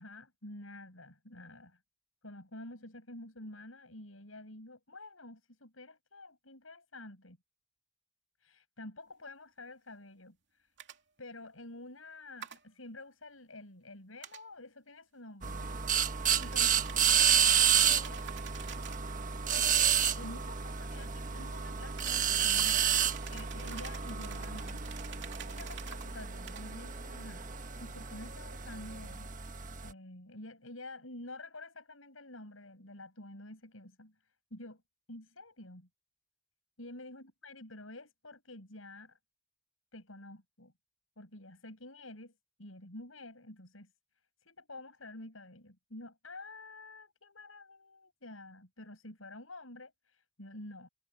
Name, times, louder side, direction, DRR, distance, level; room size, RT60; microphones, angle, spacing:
voice 1, 0.0-1.8 2.2-7.4 8.4-10.7 11.2-16.8 17.2-18.2 20.2-22.8 23.3-24.8 25.5-27.5 27.8-29.3 29.8-34.8 35.1-35.9 36.8-39.2 39.9-40.7 41.2-42.3 42.6-43.9 44.5-50.9, left 2 dB, 85° left, 7.5 m, -49 dB
sound 1, 10.8-11.0 12.4-12.6 14.2-14.4 16.4-19.1 22.0-26.1 26.5-26.7, right 8 dB, 60° right, 2.9 m, -48 dB
sound 2, 15.4-29.9, right 8 dB, 40° right, 1.5 m, -30 dB
head